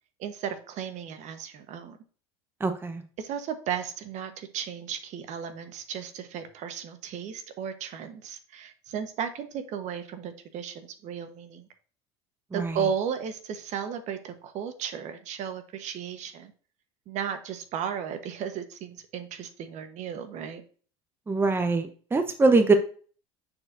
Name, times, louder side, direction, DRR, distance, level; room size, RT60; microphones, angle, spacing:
voice 1, 0.2-2.0 3.2-11.7 12.5-16.5 17.1-20.6, right 8 dB, 55° right, 9 dB, 1.1 m, -35 dB
voice 2, 2.6-3.0 12.5-12.8 21.3-22.7, right 3 dB, 15° right, 7 dB, 0.9 m, -23 dB
9.6 x 4.5 x 2.6 m, 0.40 s
supercardioid pair, 95°, 15 cm